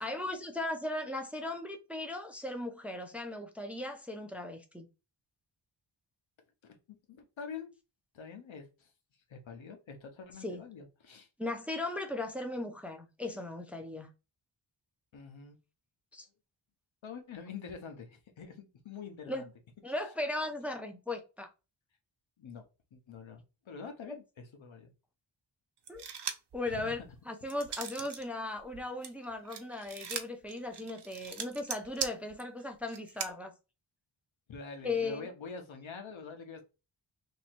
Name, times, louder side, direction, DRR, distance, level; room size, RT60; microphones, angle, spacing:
voice 1, 0.0-4.9 10.4-10.6 11.4-14.1 16.1-16.3 19.3-19.4 19.8-21.5 25.9-26.0 26.5-27.0 27.3-33.5 34.8-35.3, left 2 dB, 5° right, 0.5 m, -37 dB
voice 2, 6.6-7.7 8.1-8.9 9.3-11.3 15.1-15.6 17.0-19.5 22.4-22.6 22.9-24.9 26.6-27.1 34.5-36.6, left 5 dB, 80° left, 1.0 m, -46 dB
sound 1, 25.9-26.6 27.0-28.2 28.6-33.3, right 7 dB, 60° right, 0.7 m, -40 dB
3.1 x 2.8 x 4.4 m
wide cardioid pair, 140°, 47 cm